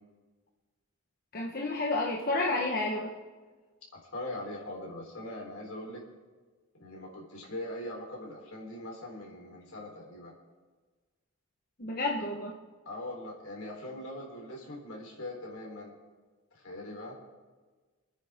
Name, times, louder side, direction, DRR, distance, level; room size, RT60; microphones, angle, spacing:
voice 1, 1.3-3.1 11.8-12.5, left 2 dB, 45° left, -2 dB, 1.3 m, -30 dB
voice 2, 3.9-6.0 6.8-10.3 12.2-12.4 12.8-15.9 16.5-17.2, left 1 dB, 75° left, -2 dB, 4.0 m, -41 dB
27.0 x 9.6 x 3.7 m, 1.4 s
head